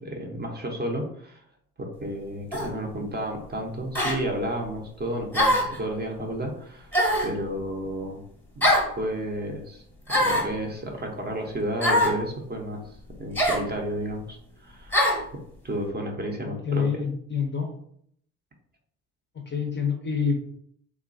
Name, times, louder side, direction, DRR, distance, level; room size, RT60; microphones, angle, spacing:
voice 1, 0.0-1.4 1.8-6.9 7.2-8.2 8.6-9.8 10.1-15.0 15.6-16.9, right 1 dB, 20° right, 1 dB, 0.6 m, -32 dB
sound 1, 2.5-2.7 3.9-4.2 5.3-5.8 6.9-7.3 8.6-8.9 10.1-10.5 11.8-12.2 13.3-13.6 14.9-15.2, equal, 5° left, 0.9 m, -22 dB
voice 2, 16.4-17.7 19.3-20.3, left 6 dB, 25° left, 1 dB, 0.5 m, -27 dB
3.0 x 2.2 x 2.5 m, 0.67 s
hypercardioid pair, 55°, 47 cm